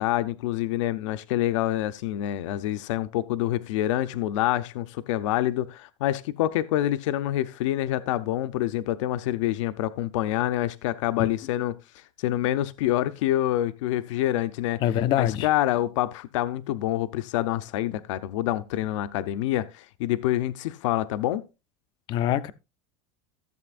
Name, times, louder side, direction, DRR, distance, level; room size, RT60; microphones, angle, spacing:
voice 1, 0.0-11.8 12.2-14.8 15.2-21.4, left 13 dB, 75° left, 0.6 m, -26 dB
voice 2, 14.8-15.5 22.1-22.5, left 11 dB, 30° left, 0.4 m, -24 dB
14.5 x 7.7 x 2.4 m
supercardioid pair, 180°, 16 cm